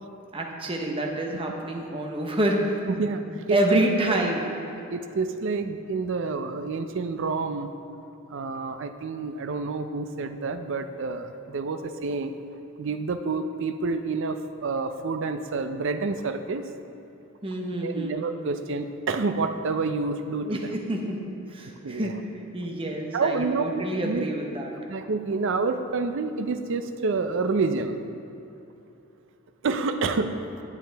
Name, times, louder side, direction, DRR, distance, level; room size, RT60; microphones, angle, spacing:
voice 1, 0.3-3.1 3.5-4.4 17.4-18.2 20.4-21.2 21.5-22.1 22.5-24.7, right 1 dB, 25° right, 1 dB, 0.9 m, -27 dB
voice 2, 3.0-3.8 4.1-4.2 4.9-7.7 8.3-12.3 12.8-16.6 17.8-20.8 21.8-22.1 23.1-24.3 24.9-28.0 29.6-30.4, right 4 dB, 60° right, 8 dB, 0.5 m, -28 dB
10.5 x 8.6 x 3.4 m, 2.9 s
head